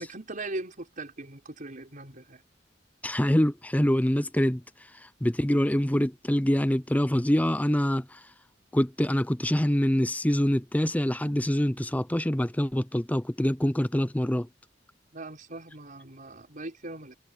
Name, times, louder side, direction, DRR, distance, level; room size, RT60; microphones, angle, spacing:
voice 1, 0.0-2.4 15.1-17.1, right 2 dB, 50° right, 5.4 m, -39 dB
voice 2, 3.0-4.6 5.2-8.2 8.7-14.5, equal, 10° left, 0.7 m, -25 dB
head